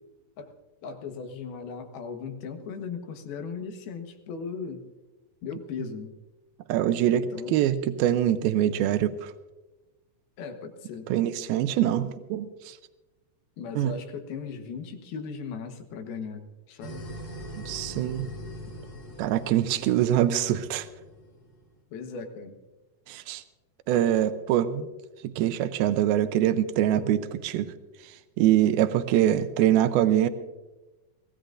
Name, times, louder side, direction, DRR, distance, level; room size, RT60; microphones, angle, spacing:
voice 1, 0.8-4.8 5.4-6.2 7.1-7.6 10.4-11.1 13.6-17.1 21.9-22.6, left 5 dB, 85° left, 6 dB, 3.2 m, -37 dB
voice 2, 6.7-9.3 11.1-12.8 13.8-13.9 17.7-18.2 19.2-20.9 23.1-23.4 23.9-24.9 25.2-27.7 28.4-30.3, right 11 dB, 90° right, 11 dB, 2.5 m, -24 dB
sound 1, 16.8-21.7, equal, 30° left, 2.6 m, -42 dB
23.5 x 17.0 x 2.6 m, 1.1 s
omnidirectional pair, 4.3 m